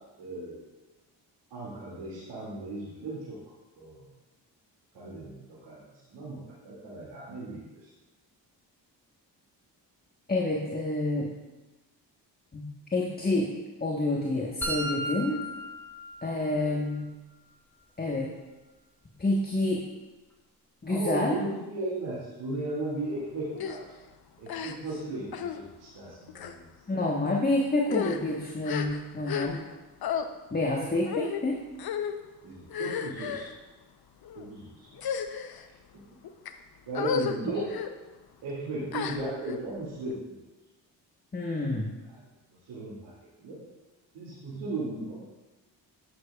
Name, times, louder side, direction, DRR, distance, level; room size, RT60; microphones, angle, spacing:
voice 1, 0.2-0.6 1.5-3.3 3.8-4.1 4.9-5.8 6.1-6.4 6.6-7.6 16.6-16.7 20.9-23.8 24.4-27.0 32.4-33.5 34.3-34.9 36.9-37.7 38.4-40.3 42.1-42.2 42.7-43.1 43.4-43.6 44.1-45.2, right 2 dB, 85° right, -10 dB, 2.5 m, -36 dB
voice 2, 10.3-11.3 12.5-12.6 12.9-13.5 13.8-15.5 16.2-17.1 18.0-18.3 19.2-19.8 20.8-21.4 26.9-29.6 30.5-31.6 37.4-37.5 41.3-41.9, left 2 dB, 20° left, -1 dB, 1.4 m, -28 dB
sound 1, 14.6-16.6, equal, 5° left, 2.6 m, -35 dB
sound 2, 23.6-23.8 24.5-25.0 25.3-25.6 26.3-26.6 27.3-27.4 27.8-29.7 30.0-30.3 31.1-31.4 31.8-32.2 32.7-33.5 34.2-34.5 34.9-35.6 36.2-36.5 36.9-37.4 37.7-37.9 38.9-39.6, left 8 dB, 55° left, 0.8 m, -33 dB
10.0 x 9.6 x 2.4 m, 1.1 s
supercardioid pair, 55°, 44 cm